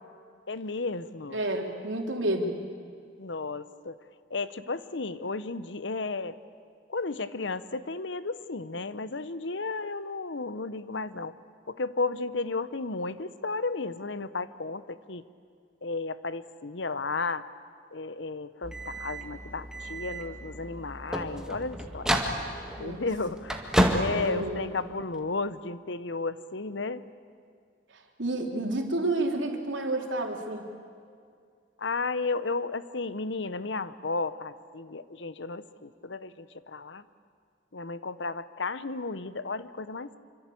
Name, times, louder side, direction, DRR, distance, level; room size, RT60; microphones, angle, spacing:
voice 1, 0.5-1.4 3.2-4.0 4.3-6.4 6.9-11.3 11.7-15.2 15.8-17.5 17.9-22.1 22.8-23.7 23.9-27.1 31.8-37.0 37.7-40.2, left 3 dB, 70° left, 14 dB, 1.0 m, -33 dB
voice 2, 1.3-2.6 22.8-23.0 24.1-24.7 28.2-30.7, right 2 dB, 75° right, 2 dB, 3.5 m, -30 dB
sound 1, 18.6-25.2, equal, 5° right, 1.9 m, -31 dB
26.5 x 25.5 x 8.6 m, 2.2 s
head